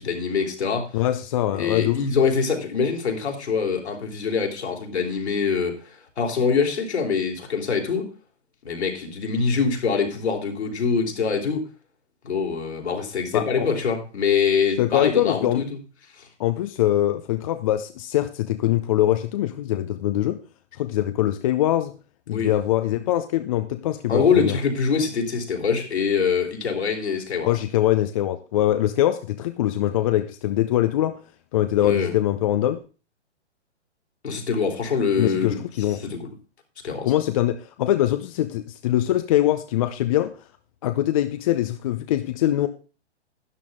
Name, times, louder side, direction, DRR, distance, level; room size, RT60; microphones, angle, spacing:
voice 1, 0.0-1.0 1.5-8.1 8.6-11.6 12.2-15.8 16.1-16.3 22.3-22.5 24.1-27.6 31.8-32.1 34.2-35.6 35.9-36.3 36.8-37.1, left 5 dB, 65° left, 2 dB, 3.6 m, -24 dB
voice 2, 0.9-2.0 13.3-13.7 14.8-15.6 16.4-20.4 20.8-21.9 22.3-24.6 27.4-31.2 31.5-32.8 35.2-36.0 37.0-40.3 40.8-42.7, left 13 dB, 30° left, 10 dB, 0.6 m, -23 dB
12.5 x 10.0 x 3.6 m, 0.34 s
figure-of-eight pair, 125°, 35 cm